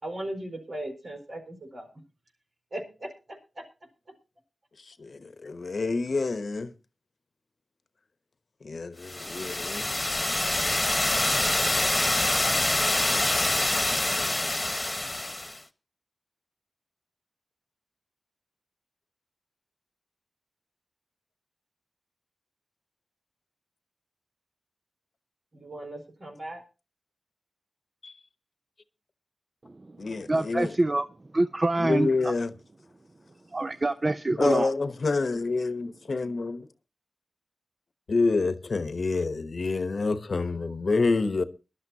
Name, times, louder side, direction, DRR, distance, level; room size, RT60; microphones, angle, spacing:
voice 1, 0.0-2.0 2.7-3.6 25.5-26.6, right 1 dB, 70° right, 4.8 m, -38 dB
voice 2, 5.0-6.7 8.6-9.9 28.0-28.1 30.0-30.7 31.8-32.5 34.4-36.7 38.1-41.4, left 3 dB, 70° left, 0.9 m, -27 dB
sound 1, 9.1-15.6, left 2 dB, 30° left, 1.2 m, -26 dB
voice 3, 29.6-32.3 33.5-34.7, right 2 dB, 40° right, 0.6 m, -27 dB
21.5 x 12.0 x 2.8 m
cardioid pair, 50°, 0 cm